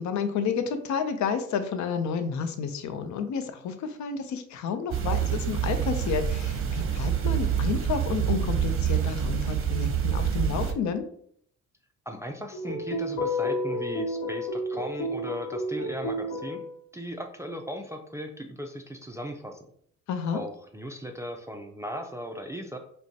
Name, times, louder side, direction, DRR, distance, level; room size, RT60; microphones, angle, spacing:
voice 1, 0.0-11.1 20.1-20.4, left 6 dB, 70° left, 9 dB, 0.6 m, -30 dB
sound 1, 4.9-10.7, right 9 dB, 45° right, 0.8 m, -27 dB
voice 2, 12.1-16.6 16.9-19.6 20.3-22.8, equal, 10° right, 3 dB, 0.4 m, -37 dB
sound 2, 12.5-16.7, left 1 dB, 85° left, 1.0 m, -31 dB
5.0 x 2.2 x 2.8 m, 0.63 s
cardioid pair, 90°, 30 cm